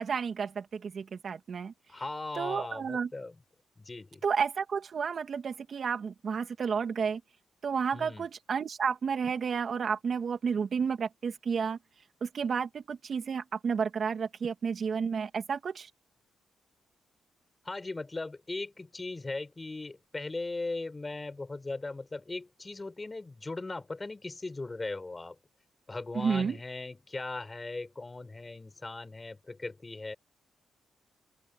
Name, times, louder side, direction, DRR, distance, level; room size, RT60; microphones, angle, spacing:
voice 1, 0.0-1.7 2.4-3.1 4.2-7.2 7.6-11.8 12.2-15.9 26.1-26.6, right 6 dB, 50° right, 2.4 m, -31 dB
voice 2, 1.9-3.4 3.8-4.2 7.9-8.3 17.6-25.4 25.9-30.1, left 3 dB, 20° left, 7.3 m, -38 dB
open air
cardioid pair, 105°, 0 cm